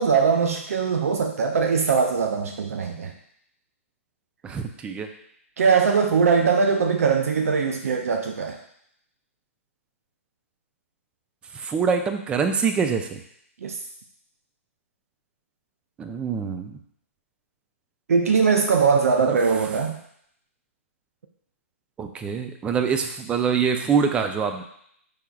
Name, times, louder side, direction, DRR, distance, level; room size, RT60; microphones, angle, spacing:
voice 1, 0.0-3.1 5.6-8.6 13.6-13.8 18.1-20.0, right 5 dB, 75° right, 5 dB, 0.5 m, -21 dB
voice 2, 4.4-5.1 11.5-13.2 16.0-16.7 19.3-19.4 22.0-24.6, right 6 dB, 15° right, 7 dB, 0.4 m, -25 dB
4.8 x 4.5 x 2.3 m, 0.70 s
hypercardioid pair, 135°, 8 cm